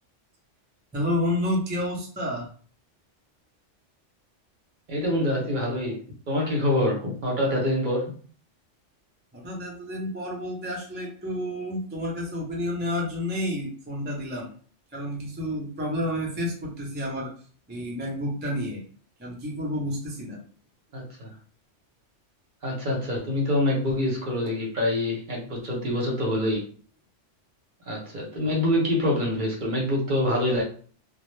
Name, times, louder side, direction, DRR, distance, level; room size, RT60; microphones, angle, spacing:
voice 1, 0.9-2.5 9.3-14.5 14.9-17.3 17.7-18.8 19.2-20.4, left 1 dB, 15° right, -2 dB, 0.3 m, -30 dB
voice 2, 4.9-6.0 6.3-8.1 20.9-21.3 22.6-26.7 27.9-30.6, left 1 dB, 50° right, -2 dB, 0.7 m, -25 dB
2.1 x 2.0 x 3.0 m, 0.43 s
omnidirectional pair, 1.2 m